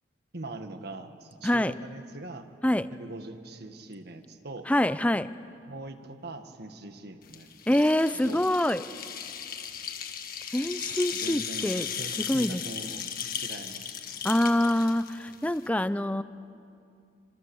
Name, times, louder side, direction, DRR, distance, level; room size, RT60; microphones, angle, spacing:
voice 1, 0.3-2.5 2.9-4.7 5.7-7.8 8.2-8.4 11.1-11.7 12.0-13.1 13.3-14.3, right 2 dB, 55° right, 7 dB, 1.6 m, -42 dB
voice 2, 1.4-1.7 2.6-2.9 4.7-5.3 7.7-8.8 10.5-11.9 12.3-12.6 14.2-16.2, left 1 dB, 5° left, 14 dB, 0.5 m, -25 dB
sound 1, 7.2-15.7, left 8 dB, 50° left, 1.6 m, -37 dB
26.5 x 25.5 x 7.1 m, 2.5 s
head